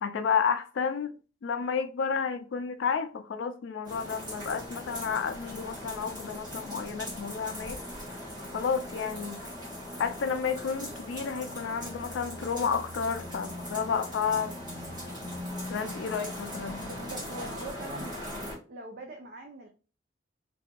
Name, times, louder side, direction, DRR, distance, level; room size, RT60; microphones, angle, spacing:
voice 1, 0.0-7.8 8.5-9.4 10.0-14.5 15.7-16.8, left 6 dB, 65° left, 0.3 m, -31 dB
sound 1, 3.8-18.6, left 1 dB, 20° right, 1.1 m, -40 dB
voice 2, 16.8-18.2 18.7-19.7, right 2 dB, 50° right, 0.4 m, -42 dB
2.6 x 2.4 x 2.2 m
head